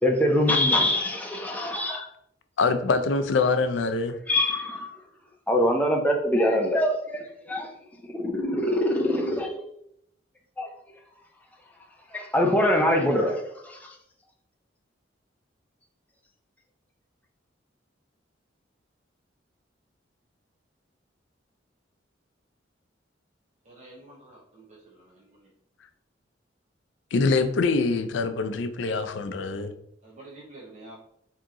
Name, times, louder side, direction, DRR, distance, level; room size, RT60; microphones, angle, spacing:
voice 1, 0.0-2.0 4.3-4.9 5.5-7.7 8.1-9.6 10.6-10.7 12.1-13.9, left 1 dB, 10° left, 0.6 m, -24 dB
voice 2, 2.6-4.2 27.1-29.7, left 4 dB, 75° left, 0.4 m, -24 dB
voice 3, 23.6-25.5 30.0-31.0, right 2 dB, 40° right, 0.8 m, -48 dB
3.7 x 2.8 x 3.6 m
head